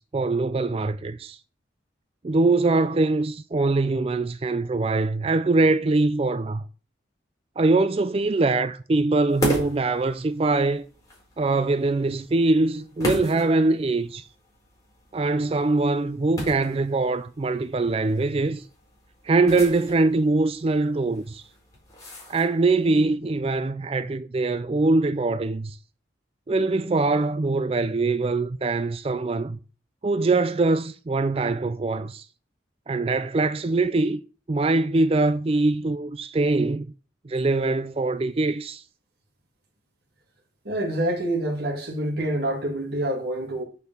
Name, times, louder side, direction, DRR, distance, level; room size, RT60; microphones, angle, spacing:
voice 1, 0.0-1.4 2.2-6.6 7.6-10.8 11.4-14.3 15.1-18.6 19.2-21.4 22.3-25.8 26.5-29.6 30.0-32.3 32.9-34.2 34.5-36.9 37.2-38.8, right 3 dB, 30° right, 0.4 m, -23 dB
sound 1, 9.3-22.8, equal, 20° left, 4.5 m, -37 dB
voice 2, 40.6-43.6, right 1 dB, 55° right, 2.3 m, -27 dB
6.7 x 6.6 x 7.1 m
head